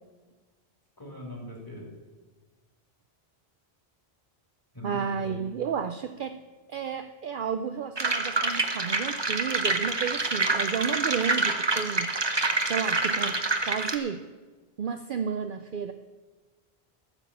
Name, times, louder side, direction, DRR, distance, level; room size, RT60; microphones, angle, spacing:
voice 1, 1.0-1.9 4.7-5.4, equal, 20° left, -2 dB, 3.2 m, -40 dB
voice 2, 4.8-6.4 6.7-12.1 12.7-14.2 14.8-15.9, right 6 dB, 60° right, 8 dB, 0.7 m, -32 dB
sound 1, 8.0-14.0, right 3 dB, 25° right, 0.8 m, -27 dB
13.0 x 7.2 x 7.0 m, 1.3 s
omnidirectional pair, 1.1 m